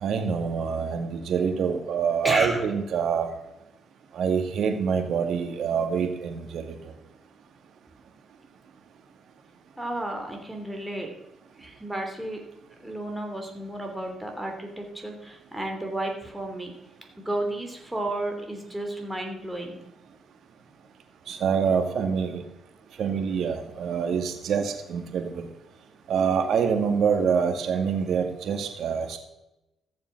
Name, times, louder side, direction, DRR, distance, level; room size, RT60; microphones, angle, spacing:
voice 1, 0.0-3.3 4.2-6.6 21.3-22.4 23.0-25.5 26.1-29.2, right 6 dB, 70° right, 5 dB, 2.0 m, -26 dB
voice 2, 2.2-2.6 9.8-11.1 11.6-12.4 12.8-16.7 17.2-19.8, right 1 dB, 10° right, 2 dB, 3.0 m, -32 dB
14.5 x 7.2 x 5.9 m, 0.95 s
cardioid pair, 90°, 0 cm